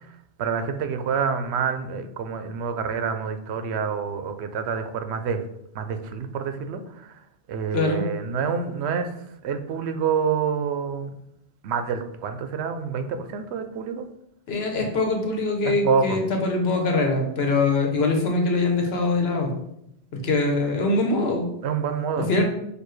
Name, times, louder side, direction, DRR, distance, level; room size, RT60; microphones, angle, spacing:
voice 1, 0.4-5.4 5.7-7.2 7.5-9.1 9.4-11.1 11.6-14.1 15.6-16.2 21.6-22.4, right 6 dB, 85° right, 8 dB, 0.8 m, -27 dB
voice 2, 7.7-8.0 14.5-19.5 20.1-21.5 22.2-22.4, left 3 dB, 75° left, 2 dB, 1.1 m, -23 dB
6.6 x 2.6 x 3.1 m, 0.78 s
omnidirectional pair, 1.1 m